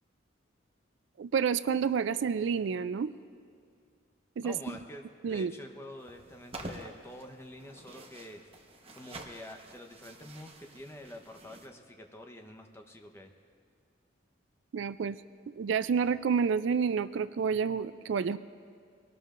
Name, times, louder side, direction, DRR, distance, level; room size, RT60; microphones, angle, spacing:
voice 1, 1.2-3.1 4.4-4.6 5.2-5.5 14.7-15.2 15.5-18.4, right 6 dB, 65° right, 14 dB, 0.3 m, -29 dB
voice 2, 4.4-8.4 8.9-13.3, left 1 dB, 15° left, 4 dB, 0.9 m, -47 dB
sound 1, 6.0-11.7, right 1 dB, 30° right, 1.1 m, -48 dB
24.0 x 18.5 x 2.5 m, 2.2 s
head